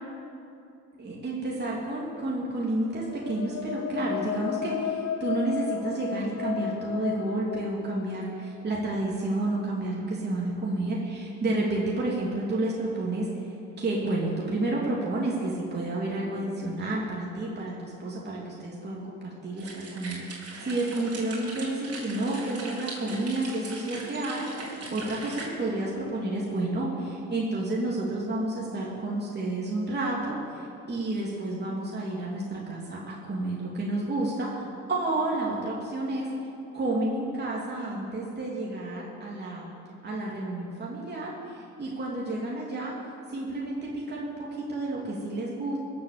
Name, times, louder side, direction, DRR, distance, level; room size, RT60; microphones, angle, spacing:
voice 1, 1.0-13.3 13.8-36.3 36.7-39.7 40.0-42.9 43.3-45.8, right 2 dB, 35° right, -4 dB, 3.0 m, -30 dB
sound 1, 2.9-8.6, left 9 dB, 50° left, 0.6 m, -34 dB
sound 2, 19.6-25.5, right 3 dB, 50° right, 4.1 m, -40 dB
21.0 x 8.0 x 6.9 m, 2.7 s
cardioid pair, 90°, 30 cm